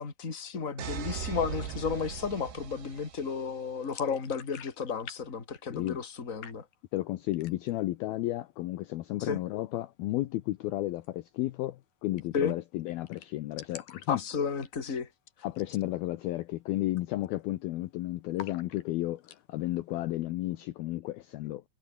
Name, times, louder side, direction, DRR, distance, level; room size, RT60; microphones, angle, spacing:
voice 1, 0.0-6.6 9.2-9.4 12.3-12.5 14.1-15.1, left 6 dB, 20° left, 2.4 m, -33 dB
sound 1, 0.8-3.7, right 8 dB, 65° right, 4.8 m, -39 dB
sound 2, 3.8-5.2 5.4-6.2 6.4-7.0 7.3-7.8 8.2-8.3 8.6-9.3 10.9-11.1 11.4-11.5 11.7-11.8 12.2-12.5 12.8-12.9 13.1-15.1 15.5-15.8 16.1-16.2 16.7-17.0 17.3-17.9 18.4-19.4, left 10 dB, 60° left, 3.6 m, -48 dB
voice 2, 6.9-14.2 15.4-21.7, left 16 dB, 80° left, 2.3 m, -33 dB
omnidirectional pair, 5.3 m